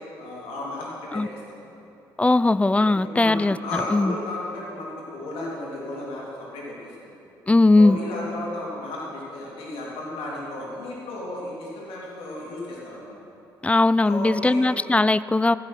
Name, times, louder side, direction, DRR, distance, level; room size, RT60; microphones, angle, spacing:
voice 1, 0.2-1.8 2.8-7.2 7.8-13.1 14.0-14.7, left 2 dB, 65° left, -4 dB, 3.3 m, -34 dB
voice 2, 2.2-4.2 7.5-8.0 13.6-15.6, left 2 dB, 10° left, 17 dB, 0.3 m, -19 dB
14.5 x 8.7 x 6.3 m, 2.8 s
figure-of-eight pair, 45°, 11 cm